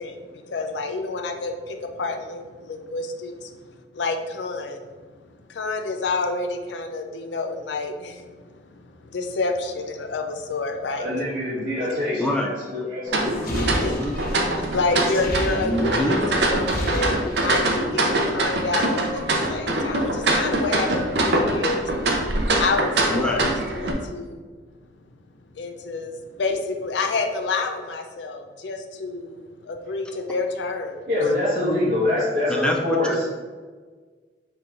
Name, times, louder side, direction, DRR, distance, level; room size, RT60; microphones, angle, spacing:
voice 1, 0.5-3.5 3.9-4.9 5.5-8.2 9.0-11.1 11.8-11.9 13.6-14.2 14.6-22.3 22.6-24.4 25.5-31.0, left 3 dB, 85° left, 5 dB, 0.5 m, -28 dB
voice 2, 11.0-13.9 31.1-33.2, left 1 dB, 50° right, -11 dB, 1.3 m, -25 dB
voice 3, 12.2-12.5 13.4-14.2 15.5-16.2 21.3-21.5 23.1-23.4 32.5-33.2, left 1 dB, 5° left, 1 dB, 0.4 m, -25 dB
sound 1, 13.1-23.9, right 1 dB, 75° right, 0.6 m, -24 dB
sound 2, 13.2-16.1 16.4-17.8, equal, 50° left, 0.7 m, -31 dB
5.4 x 3.3 x 2.5 m, 1.5 s
head